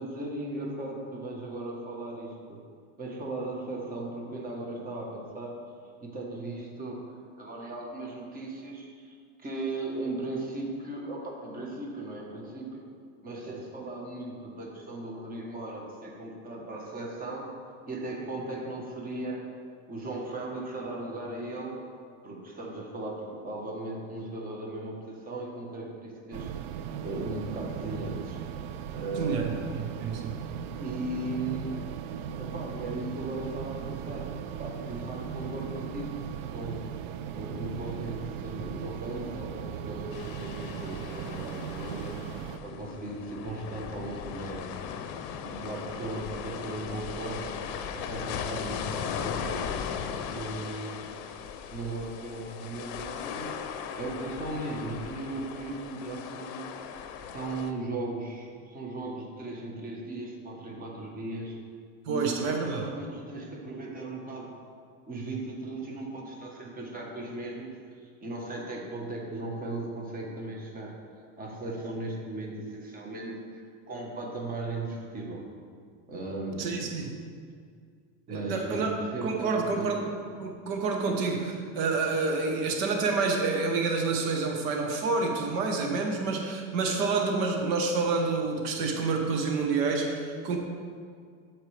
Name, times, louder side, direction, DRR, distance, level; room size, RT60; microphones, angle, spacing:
voice 1, 0.0-2.6 3.0-5.6 6.0-7.0 7.4-12.8 13.2-17.4 17.9-19.4 19.9-21.8 22.2-26.5 27.0-28.4 28.9-29.6 30.8-31.9 32.4-34.3 34.6-36.2 36.5-36.8 37.3-42.2 42.6-44.7 45.4-47.6 47.9-49.7 50.2-51.1 51.7-53.5 53.9-56.6 57.3-61.6 62.1-64.5 65.1-67.7 68.0-70.9 71.4-75.4 76.1-76.7 78.3-79.9, right 2 dB, 20° right, -1 dB, 1.2 m, -37 dB
sound 1, 26.3-42.6, right 8 dB, 55° right, 0.4 m, -38 dB
voice 2, 29.2-30.3 62.1-62.9 76.6-77.1 78.3-78.9 79.2-80.0 80.4-90.6, right 4 dB, 70° right, 2 dB, 1.1 m, -28 dB
sound 2, 40.1-57.7, left 7 dB, 55° left, 0.7 m, -38 dB
12.5 x 4.5 x 3.4 m, 2.1 s
supercardioid pair, 130°, 42 cm